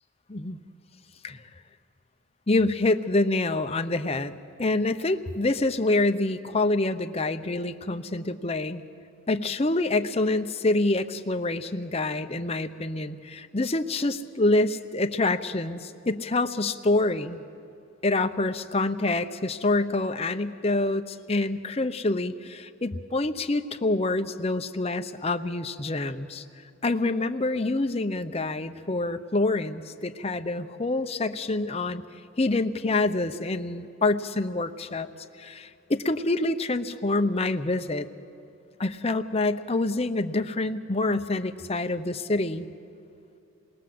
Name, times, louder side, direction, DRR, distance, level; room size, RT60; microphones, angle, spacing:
voice 1, 2.5-8.8 9.3-17.4 18.0-26.4 26.8-32.0 32.4-35.1 35.4-38.1 38.8-42.7, left 2 dB, 30° left, 7 dB, 0.8 m, -26 dB
28.0 x 20.5 x 7.8 m, 2.6 s
head